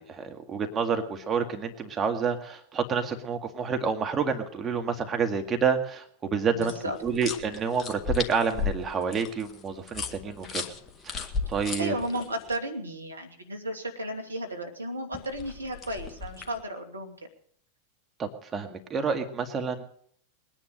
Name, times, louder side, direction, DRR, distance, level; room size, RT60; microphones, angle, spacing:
voice 1, 0.0-6.7 7.0-10.6 11.0-12.0 18.2-19.8, right 6 dB, 20° right, 4 dB, 2.0 m, -29 dB
voice 2, 6.5-7.0 11.8-17.1, right 1 dB, 80° right, 3 dB, 2.5 m, -34 dB
sound 1, 6.6-12.6 15.1-16.6, left 6 dB, 20° left, 1.8 m, -35 dB
21.5 x 10.0 x 6.5 m, 0.62 s
figure-of-eight pair, 90°, 0 cm